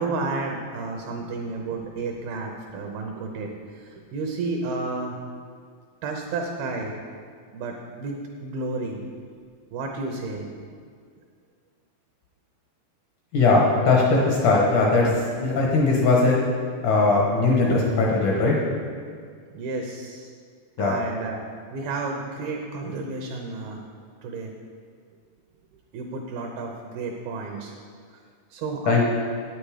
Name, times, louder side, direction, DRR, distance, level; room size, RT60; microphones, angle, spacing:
voice 1, 0.0-5.2 6.0-6.9 7.5-9.0 9.7-10.5 19.5-20.3 20.8-21.4 21.7-23.8 24.2-24.5 25.9-27.7 28.5-29.1, right 3 dB, 75° right, 2 dB, 2.4 m, -31 dB
voice 2, 13.3-15.1 15.4-16.4 16.8-18.6 20.8-20.9 28.9-29.1, left 3 dB, 70° left, -3 dB, 2.0 m, -19 dB
9.2 x 9.1 x 4.9 m, 2.1 s
omnidirectional pair, 5.0 m